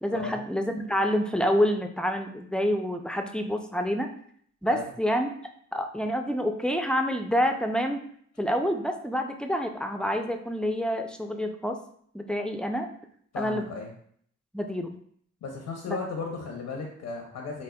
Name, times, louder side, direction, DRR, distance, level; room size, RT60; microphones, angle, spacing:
voice 1, 0.0-4.1 4.6-5.3 5.7-8.0 8.4-11.8 12.1-12.9 13.4-13.7 14.5-14.9 15.9-16.0, equal, 5° left, 5 dB, 0.3 m, -27 dB
voice 2, 13.3-13.9 15.4-17.6, left 4 dB, 80° left, 0 dB, 0.7 m, -35 dB
5.0 x 2.0 x 2.2 m, 0.63 s
cardioid pair, 60°, 31 cm